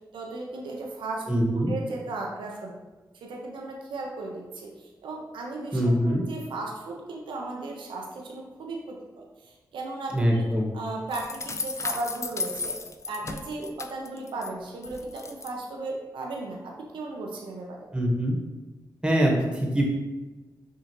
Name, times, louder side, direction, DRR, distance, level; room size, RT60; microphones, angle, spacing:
voice 1, 0.1-1.3 1.5-2.7 3.2-10.5 10.7-12.7 13.1-17.9, right 2 dB, 90° right, -1 dB, 0.6 m, -36 dB
voice 2, 1.3-1.7 5.7-6.2 10.1-10.7 17.9-18.4 19.0-19.8, equal, 10° right, 0 dB, 1.2 m, -23 dB
sound 1, 11.1-14.5 14.8-15.5, left 3 dB, 35° left, 0.4 m, -34 dB
5.9 x 2.8 x 2.9 m, 1.2 s
cardioid pair, 50°, 8 cm